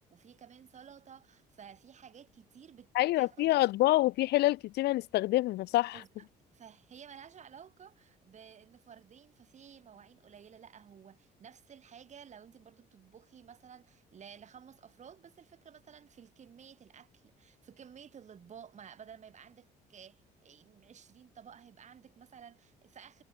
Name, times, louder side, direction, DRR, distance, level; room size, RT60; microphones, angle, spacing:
voice 1, 0.1-2.9 3.2-3.5 5.9-6.3 6.5-23.2, right 8 dB, 45° right, 7.3 m, -53 dB
voice 2, 2.9-6.0, left 17 dB, 75° left, 1.0 m, -27 dB
cardioid pair, 110°, 17 cm